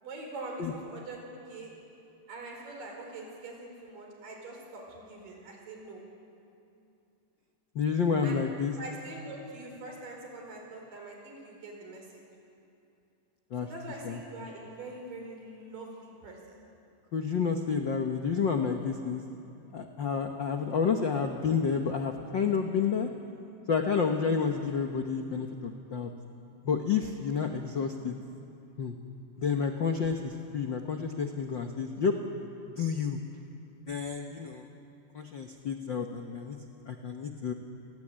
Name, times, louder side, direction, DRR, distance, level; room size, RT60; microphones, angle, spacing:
voice 1, 0.0-1.2 1.5-1.7 2.3-6.0 8.2-8.4 8.8-12.2 13.6-16.6, right 2 dB, 80° right, 0 dB, 6.4 m, -43 dB
voice 2, 7.7-8.7 13.5-13.7 14.0-14.2 17.1-19.2 19.7-23.1 23.7-26.1 26.6-28.1 28.8-29.0 29.4-32.2 32.8-33.2 33.9-34.7 35.1-36.6 36.9-37.5, left 6 dB, 65° left, 3 dB, 1.1 m, -30 dB
30.0 x 18.5 x 8.8 m, 2.7 s
omnidirectional pair, 3.8 m